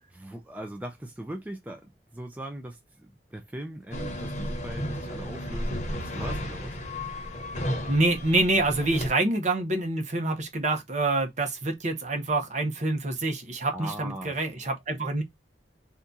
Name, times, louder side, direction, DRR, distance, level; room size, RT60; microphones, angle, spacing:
voice 1, 0.1-6.8 13.7-14.4, right 1 dB, 10° right, 0.4 m, -39 dB
sound 1, 3.9-9.1, equal, 40° left, 0.9 m, -33 dB
voice 2, 7.9-15.2, right 2 dB, 45° right, 0.8 m, -26 dB
2.9 x 2.3 x 3.7 m
head